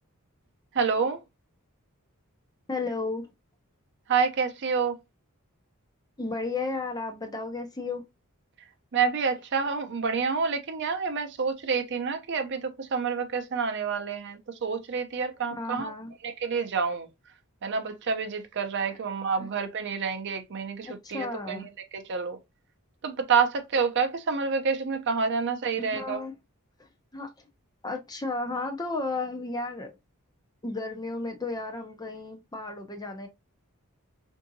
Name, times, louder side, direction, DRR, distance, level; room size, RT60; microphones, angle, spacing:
voice 1, 0.7-1.2 4.1-5.0 8.9-15.9 16.2-17.1 17.6-21.6 21.9-22.4 23.0-26.2, right 5 dB, 50° right, 0.5 m, -28 dB
voice 2, 2.7-3.3 6.2-8.1 15.6-16.1 19.4-19.5 20.8-21.7 25.8-26.3 26.8-27.5 27.8-29.9 30.6-33.3, left 3 dB, 20° left, 0.6 m, -33 dB
3.6 x 2.7 x 2.6 m
head